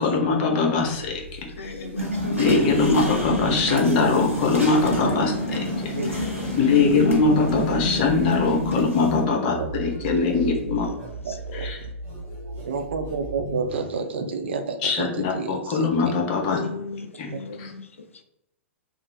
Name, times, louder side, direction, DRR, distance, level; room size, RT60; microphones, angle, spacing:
voice 1, 0.0-1.7 2.4-5.9 6.6-10.8 11.5-11.8 14.8-16.6 17.2-17.3 17.6-17.7, left 4 dB, 40° left, 0.8 m, -22 dB
sound 1, 0.8-13.8, right 2 dB, 30° right, 1.1 m, -39 dB
voice 2, 1.6-2.8 6.0-6.9 10.3-11.0 11.8-11.9 16.5-17.8, left 4 dB, 75° left, 0.3 m, -36 dB
sound 2, 2.0-9.2, equal, 90° right, 0.9 m, -28 dB
voice 3, 2.5-3.1 6.0-6.1 7.0-7.1 7.3-7.5 9.6-9.7 10.3-10.4 11.2-11.7 12.6-16.2 17.3-17.4, right 4 dB, 55° right, 0.4 m, -30 dB
sound 3, 3.3-8.6, equal, 10° left, 1.1 m, -40 dB
2.6 x 2.3 x 3.0 m
figure-of-eight pair, 105°, 7 cm